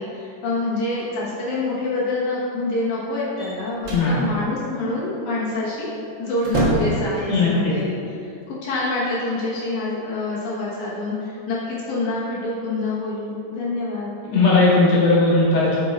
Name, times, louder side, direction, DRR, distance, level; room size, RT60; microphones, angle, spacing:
voice 1, 0.0-5.9 6.2-14.1, left 2 dB, 75° left, -7 dB, 2.7 m, -26 dB
sound 1, 3.4-4.1 5.8-5.9 6.3-7.1, right 1 dB, 55° right, 1.4 m, -24 dB
voice 2, 3.9-4.2 7.3-7.7 14.3-15.8, left 3 dB, 60° left, -6 dB, 2.8 m, -17 dB
7.9 x 5.3 x 4.2 m, 2.5 s
omnidirectional pair, 3.5 m